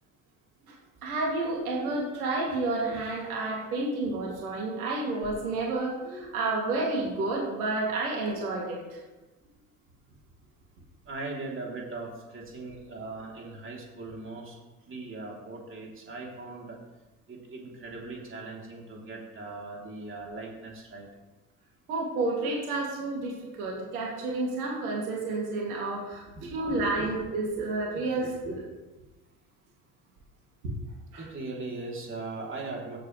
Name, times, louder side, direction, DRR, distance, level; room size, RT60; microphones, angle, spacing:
voice 1, 1.0-9.0 21.9-26.2 26.5-28.6 30.6-30.7 31.1-31.3, right 2 dB, 75° right, -2 dB, 2.9 m, -30 dB
voice 2, 11.1-14.5 14.9-16.8 17.3-21.1 26.4-27.2 27.9-28.0 28.4-28.5 31.2-33.0, right 3 dB, 25° right, -2 dB, 3.6 m, -39 dB
15.5 x 8.3 x 3.4 m, 1.2 s
figure-of-eight pair, 65°, 45 cm